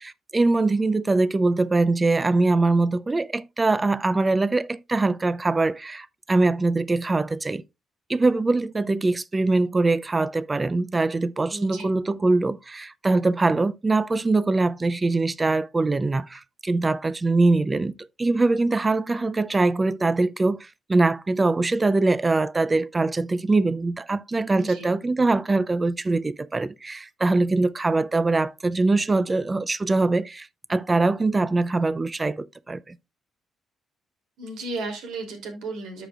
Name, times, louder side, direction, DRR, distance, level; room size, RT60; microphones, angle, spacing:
voice 1, 0.0-7.6 8.1-33.0, right 3 dB, 25° right, 0.5 m, -23 dB
voice 2, 11.5-11.9 24.5-24.9 34.4-36.1, right 2 dB, 85° right, 2.9 m, -34 dB
13.5 x 5.0 x 2.4 m
cardioid pair, 90°, 0 cm